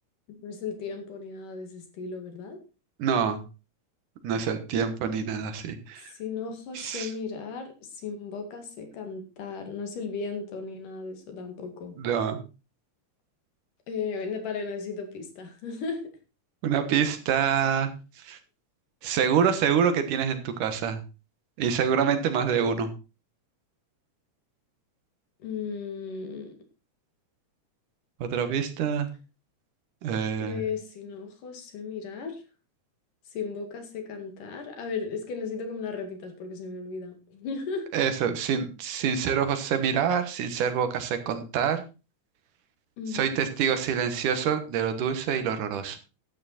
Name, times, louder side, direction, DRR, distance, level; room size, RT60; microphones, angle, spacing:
voice 1, 0.3-2.6 6.1-12.0 13.9-16.0 25.4-26.6 30.4-32.4 33.3-37.9 43.0-43.4, left 5 dB, 85° left, 5 dB, 3.7 m, -35 dB
voice 2, 3.0-3.4 4.2-6.1 6.7-7.1 12.0-12.4 16.6-17.9 18.2-18.4 19.0-21.0 21.6-22.9 28.2-29.1 30.0-30.6 37.9-41.8 43.1-46.0, right 7 dB, 80° right, 9 dB, 2.8 m, -26 dB
11.5 x 9.0 x 4.2 m, 0.31 s
omnidirectional pair, 3.6 m